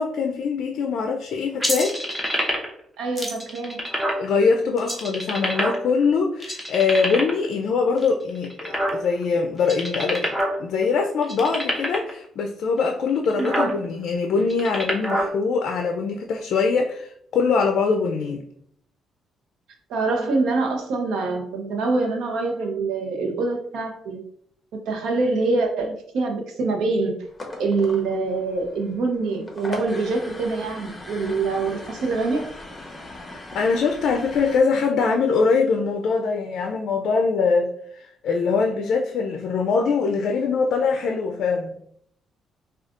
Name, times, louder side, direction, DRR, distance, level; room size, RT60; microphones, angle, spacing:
voice 1, 0.0-2.0 4.2-18.4 33.3-37.7 38.2-41.7, left 4 dB, 70° left, 3 dB, 0.4 m, -23 dB
sound 1, 1.6-2.8 3.2-4.2 4.8-6.0 6.4-7.4 8.0-9.2 9.6-10.6 10.8-10.9 11.2-12.1 12.8-12.9 13.2-13.7 14.4-15.3, equal, 5° right, 0.9 m, -25 dB
voice 2, 3.0-3.9 13.4-13.7 19.9-24.2 24.9-27.2 27.6-32.4, right 3 dB, 85° right, 3 dB, 0.7 m, -25 dB
sound 2, 27.2-34.6, left 2 dB, 20° left, 0.9 m, -39 dB
4.9 x 2.3 x 2.4 m, 0.66 s
cardioid pair, 90°, 0 cm